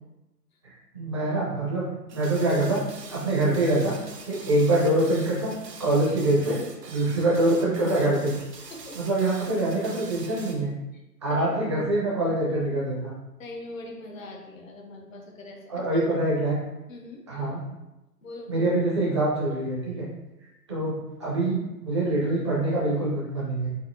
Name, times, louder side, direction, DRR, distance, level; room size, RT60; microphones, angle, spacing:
voice 1, 0.6-2.8 3.1-4.0 4.3-5.5 5.8-6.6 6.9-8.3 9.0-10.7 11.2-13.1 15.7-16.6 17.3-17.6 18.5-20.1 20.7-23.7, right 1 dB, 20° right, -5 dB, 0.5 m, -25 dB
sound 1, 2.1-10.6, right 4 dB, 85° right, 0.8 m, -44 dB
voice 2, 13.4-16.0 16.9-17.2 18.2-18.6, left 2 dB, 55° left, 1 dB, 0.9 m, -42 dB
4.1 x 2.6 x 2.6 m, 0.98 s
figure-of-eight pair, 135°, 48 cm